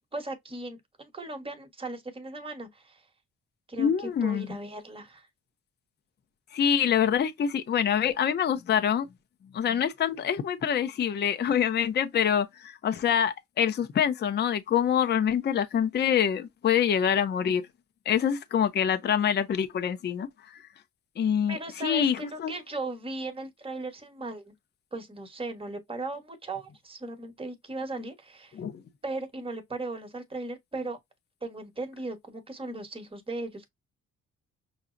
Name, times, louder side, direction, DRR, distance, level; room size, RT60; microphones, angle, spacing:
voice 1, 0.1-3.0 3.7-3.9 4.2-5.3 21.5-24.5 24.9-28.6 29.0-31.0 31.4-33.7, right 2 dB, 20° right, 1.0 m, -37 dB
voice 2, 3.8-4.5 6.5-9.1 9.5-17.6 18.1-20.6 21.2-22.5 28.6-28.8, left 8 dB, 35° left, 0.5 m, -26 dB
5.6 x 2.0 x 2.4 m
cardioid pair, 90°, 30 cm